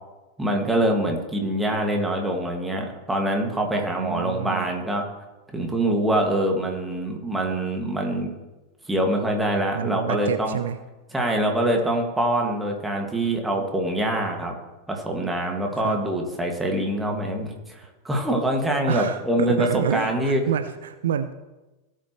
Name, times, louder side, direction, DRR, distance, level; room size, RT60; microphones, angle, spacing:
voice 1, 0.4-5.0 5.5-8.3 8.9-10.6 11.1-14.5 14.9-20.4, right 1 dB, 5° right, 1 dB, 2.1 m, -24 dB
voice 2, 3.9-4.7 9.7-10.8 15.7-16.0 18.9-21.3, right 9 dB, 60° right, 11 dB, 0.5 m, -28 dB
17.5 x 7.6 x 3.2 m, 1.1 s
figure-of-eight pair, 90°, 0 cm